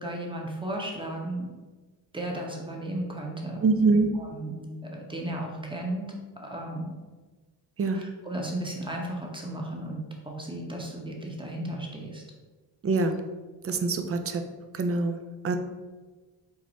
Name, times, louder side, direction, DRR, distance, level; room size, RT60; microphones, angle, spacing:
voice 1, 0.0-1.5 2.1-3.7 4.1-6.1 6.4-6.9 7.9-10.0 10.2-12.2, right 1 dB, 10° right, -1 dB, 0.9 m, -34 dB
voice 2, 3.6-4.1 7.8-8.0 12.8-13.2 13.6-14.4 14.7-15.6, right 3 dB, 35° right, 6 dB, 0.5 m, -24 dB
4.8 x 2.1 x 3.9 m, 1.3 s
cardioid pair, 75°, 44 cm